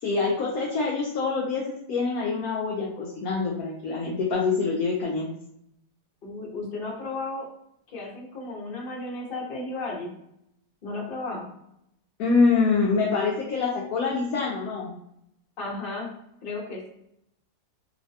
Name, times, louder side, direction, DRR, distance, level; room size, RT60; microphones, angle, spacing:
voice 1, 0.0-5.3 12.2-14.9, left 4 dB, 75° left, -2 dB, 0.8 m, -25 dB
voice 2, 6.2-7.5 7.9-10.1 10.8-11.5 15.6-16.1 16.4-16.9, left 2 dB, 45° left, -3 dB, 0.8 m, -34 dB
3.1 x 2.1 x 2.7 m, 0.77 s
omnidirectional pair, 2.0 m